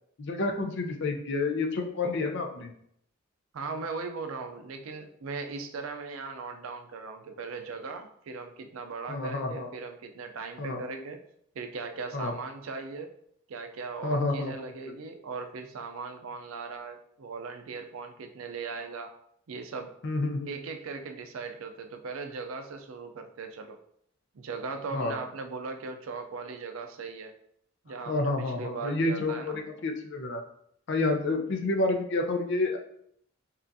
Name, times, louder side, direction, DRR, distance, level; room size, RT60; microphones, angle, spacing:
voice 1, 0.2-2.7 9.1-9.7 10.6-10.8 12.1-12.3 14.0-14.9 20.0-20.6 24.9-25.1 28.1-30.4 30.9-32.8, left 2 dB, 60° left, 5 dB, 0.6 m, -29 dB
voice 2, 3.5-11.2 11.5-13.1 13.5-19.1 19.5-19.9 20.5-23.8 24.3-27.3 27.8-29.6, right 4 dB, 80° right, 6 dB, 0.5 m, -38 dB
5.5 x 2.4 x 2.6 m, 0.71 s
head